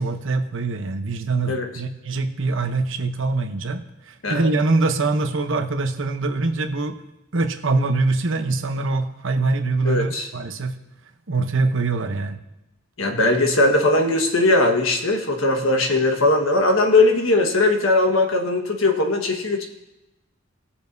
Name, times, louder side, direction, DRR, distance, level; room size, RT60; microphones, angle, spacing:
voice 1, 0.0-7.0 7.3-10.8 11.3-12.4, right 3 dB, 65° right, 7 dB, 0.9 m, -23 dB
voice 2, 9.8-10.3 13.0-19.7, left 2 dB, 85° left, 3 dB, 1.5 m, -19 dB
19.0 x 7.0 x 2.7 m, 0.97 s
head